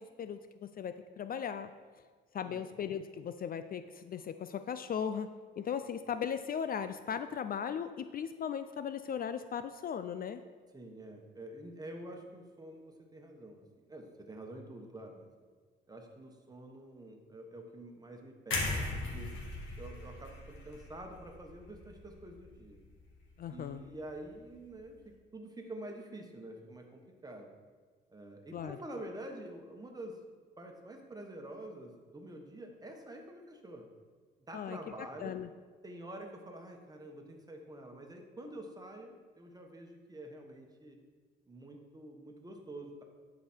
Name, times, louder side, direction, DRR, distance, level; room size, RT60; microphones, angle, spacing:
voice 1, 0.0-1.7 2.3-10.4 23.4-23.8 28.5-28.8 34.5-35.5, left 8 dB, 45° left, 11 dB, 0.4 m, -38 dB
voice 2, 10.7-15.3 15.9-19.4 19.8-22.8 23.5-27.5 28.1-30.2 30.6-33.9 34.4-35.4 35.8-41.0 41.5-43.0, right 1 dB, 20° right, 2 dB, 1.4 m, -47 dB
sound 1, 18.5-22.5 22.9-23.1, left 2 dB, 80° left, 1.9 m, -38 dB
11.0 x 5.0 x 4.5 m, 1.5 s
cardioid pair, 90°, 20 cm